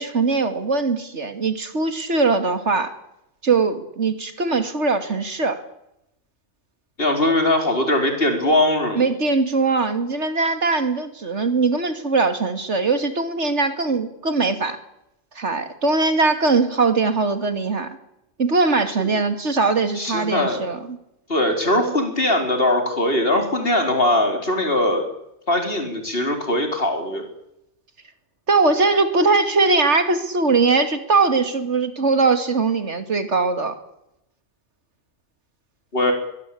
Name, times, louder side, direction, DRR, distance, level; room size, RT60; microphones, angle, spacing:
voice 1, 0.0-2.9 3.4-5.6 8.9-14.8 15.4-18.0 18.4-21.0 28.5-33.7, right 3 dB, 65° right, 9 dB, 2.7 m, -21 dB
voice 2, 7.0-9.0 19.0-19.1 20.0-20.7 21.3-25.1 25.5-27.2 35.9-36.1, left 1 dB, 50° left, 4 dB, 4.6 m, -21 dB
23.0 x 21.5 x 8.6 m, 0.84 s
omnidirectional pair, 1.3 m